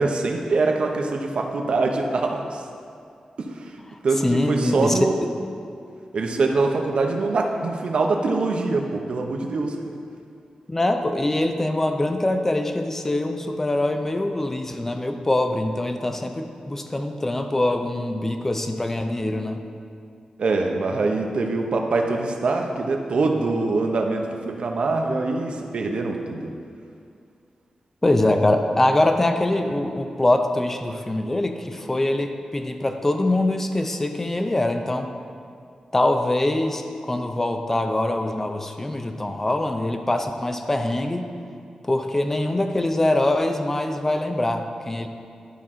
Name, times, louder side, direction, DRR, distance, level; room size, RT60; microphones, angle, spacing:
voice 1, 0.0-2.6 3.4-3.7 4.0-5.3 6.1-9.8 20.4-26.5, right 3 dB, 60° right, 3 dB, 0.7 m, -24 dB
voice 2, 4.2-5.3 10.7-19.6 28.0-35.1 35.9-41.3 41.9-45.1, left 1 dB, 15° left, 6 dB, 0.5 m, -23 dB
11.0 x 5.9 x 3.7 m, 2.4 s
wide cardioid pair, 175°, 2 cm